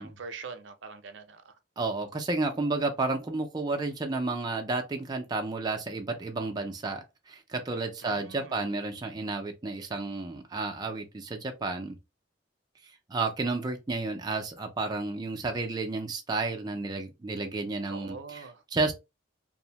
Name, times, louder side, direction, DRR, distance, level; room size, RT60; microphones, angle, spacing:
voice 1, 0.0-1.5 8.0-8.6 17.9-18.6, right 4 dB, 80° right, 0.5 m, -43 dB
voice 2, 1.8-12.0 13.1-18.4 18.7-18.9, right 3 dB, 20° right, 0.3 m, -31 dB
2.6 x 2.0 x 2.8 m
head